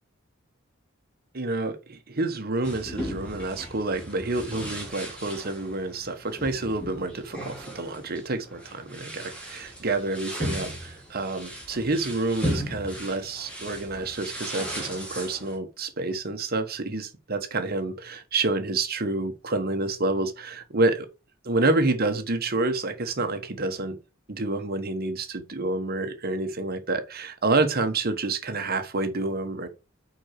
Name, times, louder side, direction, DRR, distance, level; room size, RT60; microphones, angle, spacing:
voice 1, 1.3-21.1 21.4-24.0 24.3-29.7, right 2 dB, 50° right, 1.3 m, -28 dB
sound 1, 2.6-15.6, equal, 5° left, 2.7 m, -36 dB
6.2 x 5.0 x 5.9 m
head